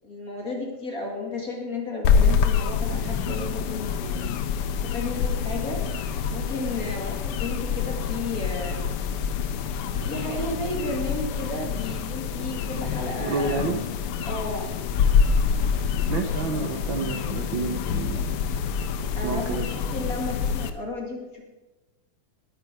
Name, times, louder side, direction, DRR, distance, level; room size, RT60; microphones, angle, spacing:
voice 1, 0.0-4.2 4.9-5.8 6.3-8.9 10.0-13.6 14.3-14.8 19.2-21.5, left 2 dB, 30° left, 0 dB, 2.4 m, -33 dB
sound 1, 2.0-20.7, left 6 dB, 75° left, 1.3 m, -26 dB
voice 2, 13.2-13.8 16.1-18.4 19.2-19.7, right 4 dB, 60° right, 4 dB, 1.3 m, -29 dB
19.0 x 9.7 x 4.8 m, 1.1 s
omnidirectional pair, 3.6 m